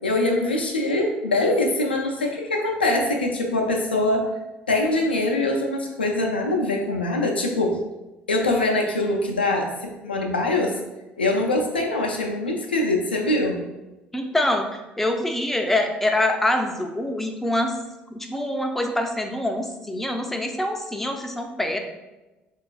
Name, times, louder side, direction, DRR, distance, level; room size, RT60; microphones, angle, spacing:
voice 1, 0.0-4.3 4.7-7.8 8.3-10.8 11.2-13.6, left 2 dB, 85° left, 1 dB, 0.4 m, -23 dB
voice 2, 14.1-14.7 15.0-17.7 18.1-21.8, left 1 dB, 5° left, 4 dB, 0.4 m, -25 dB
3.6 x 2.3 x 2.3 m, 1.1 s
figure-of-eight pair, 55°, 5 cm